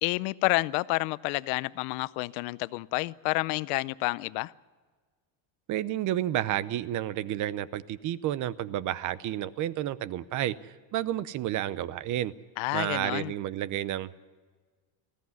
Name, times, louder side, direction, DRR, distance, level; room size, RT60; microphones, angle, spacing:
voice 1, 0.0-4.5 12.6-13.3, left 23 dB, 80° left, 0.7 m, -29 dB
voice 2, 5.7-12.3 12.7-14.2, right 12 dB, 40° right, 0.7 m, -31 dB
20.0 x 15.5 x 9.6 m
cardioid pair, 160°, 46 cm